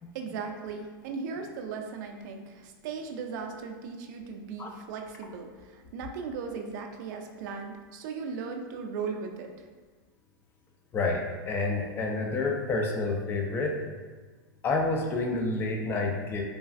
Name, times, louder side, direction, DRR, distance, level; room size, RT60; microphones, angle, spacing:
voice 1, 0.1-9.5, right 5 dB, 55° right, 4 dB, 0.4 m, -37 dB
voice 2, 10.9-13.8 14.6-16.4, left 3 dB, 20° left, 1 dB, 0.3 m, -29 dB
3.1 x 2.3 x 2.5 m, 1.4 s
hypercardioid pair, 135°, 12 cm